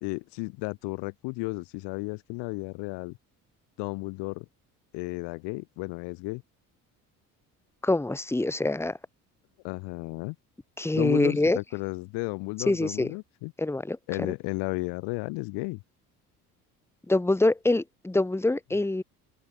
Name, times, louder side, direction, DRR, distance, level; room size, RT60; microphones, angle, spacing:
voice 1, 0.0-3.2 3.8-4.5 4.9-6.4 9.6-10.4 10.9-13.5 14.1-15.8, left 28 dB, 60° left, 0.8 m, -33 dB
voice 2, 7.8-9.0 10.8-11.6 12.7-13.1 13.6-14.3 17.1-19.0, left 2 dB, 5° left, 1.2 m, -25 dB
open air
hypercardioid pair, 55°, 45 cm